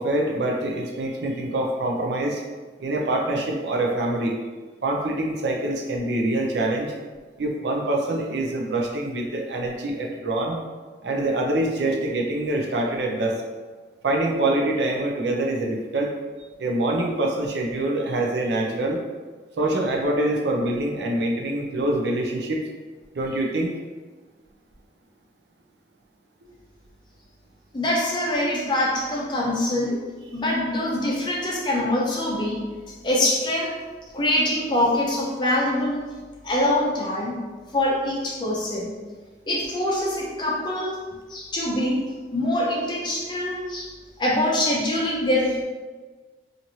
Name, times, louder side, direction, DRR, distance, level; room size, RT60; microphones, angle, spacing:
voice 1, 0.0-2.4 2.8-4.4 4.8-6.9 7.4-10.6 11.0-13.4 14.0-16.1 16.6-19.0 19.6-22.6 23.2-23.7, right 1 dB, 75° right, 0 dB, 0.5 m, -25 dB
voice 2, 27.7-30.0 30.3-33.8 34.1-36.1 36.4-37.4 37.7-38.9 39.5-41.0 41.3-42.1 42.3-43.9 44.2-45.6, left 1 dB, 25° left, -4 dB, 0.5 m, -24 dB
3.0 x 2.5 x 2.7 m, 1.3 s
head